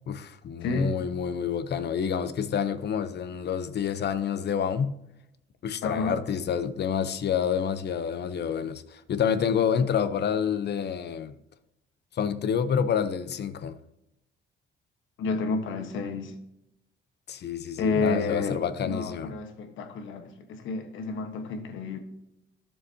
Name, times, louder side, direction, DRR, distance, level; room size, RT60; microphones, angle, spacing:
voice 1, 0.1-5.0 5.6-11.3 12.1-13.7 17.3-19.3, left 7 dB, 55° left, 0.9 m, -28 dB
voice 2, 0.6-1.0 5.8-6.2 15.2-16.3 17.7-18.6 18.8-22.0, left 4 dB, 80° left, 1.4 m, -30 dB
13.0 x 7.0 x 2.9 m
cardioid pair, 90°, 20 cm